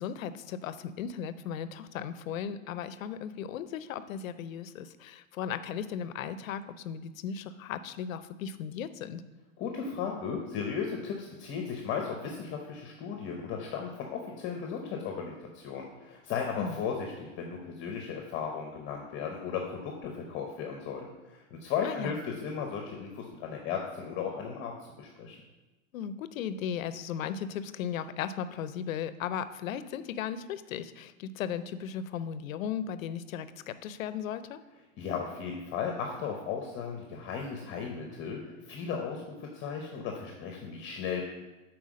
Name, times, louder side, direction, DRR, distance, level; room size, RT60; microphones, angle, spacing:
voice 1, 0.0-9.2 16.6-16.8 21.8-22.2 25.9-34.6, left 8 dB, 80° left, 13 dB, 0.6 m, -36 dB
voice 2, 9.6-25.4 35.0-41.2, left 6 dB, 30° left, 2 dB, 0.8 m, -36 dB
5.6 x 4.5 x 6.2 m, 1.1 s
hypercardioid pair, 130°, 40 cm